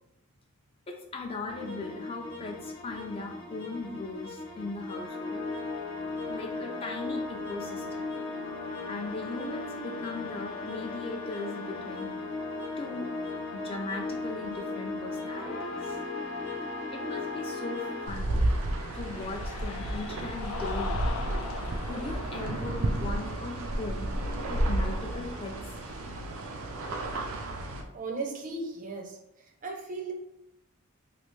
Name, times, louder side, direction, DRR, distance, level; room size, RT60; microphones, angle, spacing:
voice 1, 0.9-5.4 6.3-8.2 8.9-12.1 12.8-13.1 13.5-16.0 16.9-18.4 18.9-21.0 21.9-24.1 24.4-25.8, left 3 dB, 25° left, 2 dB, 0.3 m, -38 dB
sound 1, 1.5-18.1, left 3 dB, 65° left, 0.8 m, -37 dB
Cheering, 17.3-26.4, left 4 dB, 90° left, 0.4 m, -43 dB
sound 2, 18.0-27.8, right 1 dB, 90° right, 0.5 m, -32 dB
voice 2, 27.9-29.2 29.6-30.1, right 3 dB, 40° right, 1 dB, 0.5 m, -36 dB
3.3 x 2.5 x 3.0 m, 0.85 s
head